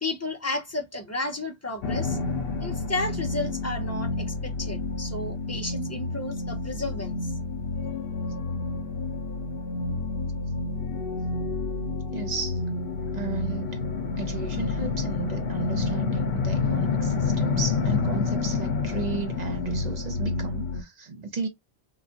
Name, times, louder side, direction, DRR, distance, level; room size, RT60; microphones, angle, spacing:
voice 1, 0.0-2.2 2.6-7.2, left 2 dB, 15° left, 0.7 m, -32 dB
sound 1, 1.8-20.8, left 4 dB, 70° left, 0.8 m, -29 dB
voice 2, 12.1-12.6 13.1-13.8 14.2-21.5, right 5 dB, 45° right, 0.9 m, -34 dB
3.8 x 2.4 x 2.6 m
omnidirectional pair, 1.1 m